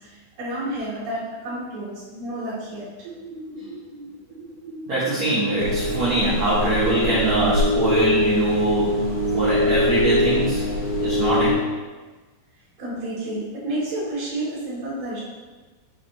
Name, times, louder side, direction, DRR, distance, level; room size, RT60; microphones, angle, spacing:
voice 1, 0.0-3.1 12.8-15.2, right 1 dB, 40° right, -9 dB, 1.9 m, -30 dB
sound 1, 3.0-8.0, right 1 dB, 80° right, 2.8 m, -39 dB
voice 2, 4.9-9.0 9.3-10.6 11.0-11.5, right 2 dB, 65° right, -10 dB, 1.8 m, -22 dB
sound 2, 5.6-11.5, left 1 dB, 65° left, 2.4 m, -23 dB
6.8 x 4.9 x 3.0 m, 1.3 s
omnidirectional pair, 5.1 m